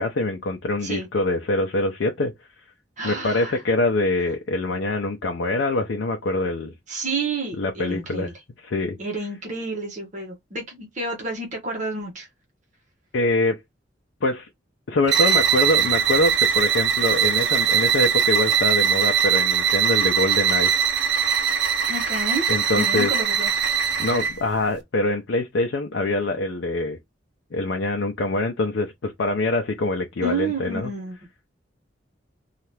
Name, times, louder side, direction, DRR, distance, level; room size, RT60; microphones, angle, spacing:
voice 1, 0.0-2.3 3.0-6.7 7.6-8.3 8.6-9.0 13.1-13.6 14.2-14.5 14.9-20.7 22.5-23.1 24.0-27.0 27.5-30.9, left 2 dB, 75° left, 0.5 m, -24 dB
voice 2, 3.0-3.6 6.9-8.3 9.0-12.3 21.9-22.4 22.7-23.5 30.2-31.2, right 2 dB, 40° right, 1.0 m, -30 dB
sound 1, 15.0-24.4, right 7 dB, 65° right, 0.7 m, -21 dB
2.7 x 2.4 x 3.2 m
head